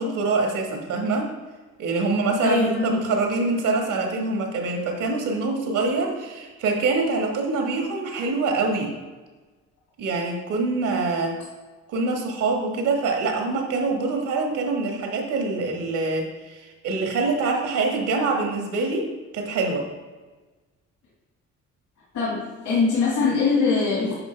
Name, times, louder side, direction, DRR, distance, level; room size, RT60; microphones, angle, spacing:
voice 1, 0.0-1.3 1.8-8.9 10.0-11.4 11.9-19.0 19.3-19.9, right 3 dB, 85° right, 2 dB, 1.5 m, -25 dB
voice 2, 2.4-3.0 22.1-24.1, left 4 dB, 75° left, -7 dB, 2.0 m, -22 dB
9.7 x 3.9 x 3.3 m, 1.3 s
cardioid pair, 90°, 30 cm